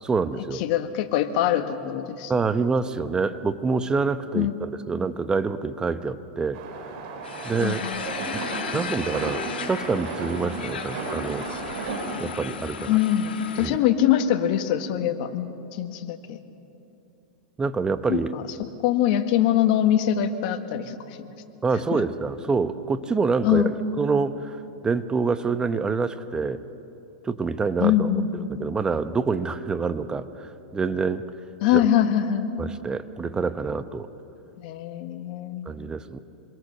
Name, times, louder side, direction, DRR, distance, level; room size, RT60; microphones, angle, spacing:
voice 1, 0.0-0.6 2.3-6.6 7.4-7.8 8.3-8.4 8.7-11.5 12.2-13.0 13.6-13.8 17.6-18.3 21.6-24.6 24.8-26.6 27.2-28.1 28.5-31.3 31.7-31.9 32.6-34.1 35.7-36.2, right 4 dB, 15° right, 11 dB, 1.0 m, -26 dB
voice 2, 0.5-2.3 4.3-4.6 7.6-8.6 12.9-16.4 18.1-21.3 21.9-22.0 23.4-23.7 27.8-28.6 31.6-32.5 34.6-35.8, left 11 dB, 55° left, 8 dB, 1.7 m, -24 dB
sound 1, 6.5-12.2, right 3 dB, 55° right, 4.4 m, -34 dB
sound 2, 7.2-13.7, left 6 dB, 90° left, 2.0 m, -36 dB
26.5 x 22.0 x 6.7 m, 2.8 s
hypercardioid pair, 125°, 5 cm